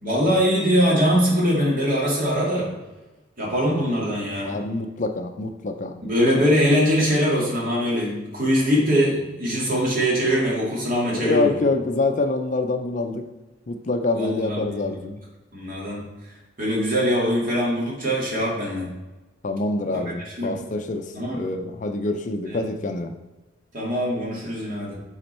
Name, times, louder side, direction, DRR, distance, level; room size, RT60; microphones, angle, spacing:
voice 1, 0.0-2.7 3.4-4.6 6.0-11.5 14.1-15.0 15.5-18.9 19.9-20.6 21.1-21.4 22.5-22.6 23.7-25.0, equal, 45° right, -3 dB, 2.2 m, -22 dB
voice 2, 4.4-6.0 11.1-13.2 13.7-15.2 19.4-21.0 21.3-23.1, left 2 dB, 40° left, 6 dB, 0.5 m, -25 dB
8.1 x 4.4 x 4.3 m, 1.1 s
head